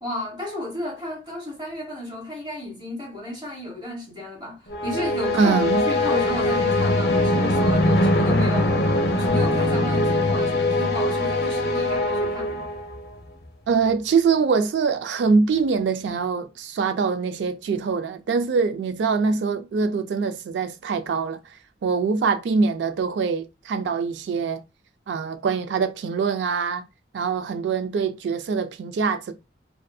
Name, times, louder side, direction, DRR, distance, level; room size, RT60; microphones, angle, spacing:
voice 1, 0.0-8.8 9.1-12.6, left 1 dB, 25° right, 1.1 m, -33 dB
sound 1, 4.7-13.1, left 1 dB, 60° left, 0.5 m, -22 dB
voice 2, 5.3-5.8 13.7-21.4 21.8-24.6 25.1-26.8 27.1-29.3, right 5 dB, 80° right, 0.3 m, -23 dB
2.5 x 2.5 x 2.2 m
head